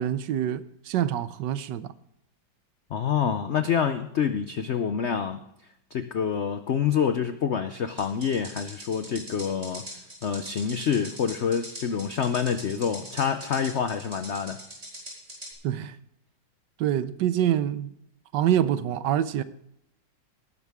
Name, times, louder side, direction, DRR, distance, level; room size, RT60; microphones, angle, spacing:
voice 1, 0.0-1.9 15.6-16.0 16.8-17.9 18.3-19.4, right 11 dB, 75° right, 1.3 m, -26 dB
voice 2, 2.9-5.4 5.9-9.8 10.2-14.6, left 7 dB, 70° left, 0.6 m, -27 dB
sound 1, 8.0-15.5, equal, 20° right, 4.9 m, -41 dB
18.5 x 11.0 x 3.6 m
omnidirectional pair, 2.0 m